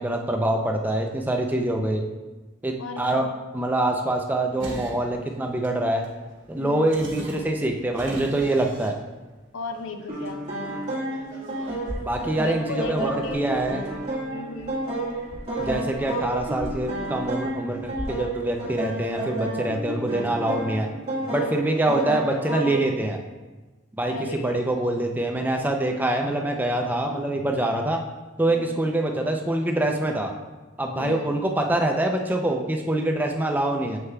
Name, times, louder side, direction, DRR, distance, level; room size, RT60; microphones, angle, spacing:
voice 1, 0.0-2.0 2.6-3.3 3.5-6.0 6.5-8.9 12.0-13.8 15.6-20.9 21.3-23.2 24.0-28.0 28.4-30.3 30.8-34.0, right 1 dB, 10° right, 2 dB, 0.4 m, -25 dB
voice 2, 2.8-3.3 6.6-7.1 9.5-10.4 12.4-13.5 14.3-14.8 24.1-24.7 28.5-28.9 31.0-31.4, left 3 dB, 90° left, 7 dB, 0.5 m, -35 dB
sound 1, 4.6-18.2, right 1 dB, 70° right, 1.3 m, -41 dB
sound 2, 10.1-22.9, right 2 dB, 30° right, 1.6 m, -31 dB
7.3 x 6.5 x 2.3 m, 1.2 s
head